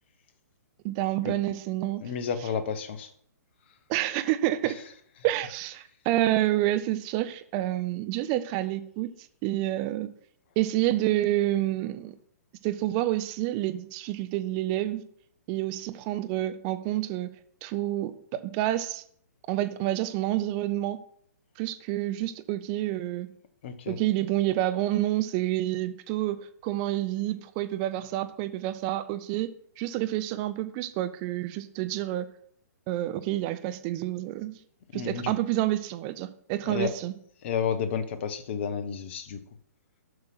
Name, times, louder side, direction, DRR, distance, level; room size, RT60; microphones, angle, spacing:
voice 1, 0.8-2.0 3.9-4.8 5.2-9.1 9.4-10.1 10.6-12.1 12.6-15.0 15.5-17.3 17.6-19.0 19.5-21.0 21.6-23.3 23.9-29.5 29.8-32.3 32.9-34.6 34.9-37.1, right 15 dB, 30° right, 10 dB, 0.7 m, -28 dB
voice 2, 2.0-3.1 3.7-3.8 4.6-4.8 5.2-5.3 23.6-24.0 34.9-35.3 36.6-36.9 37.4-39.4, left 7 dB, 40° left, 10 dB, 1.0 m, -31 dB
7.8 x 5.7 x 5.8 m, 0.64 s
figure-of-eight pair, 120°, 9 cm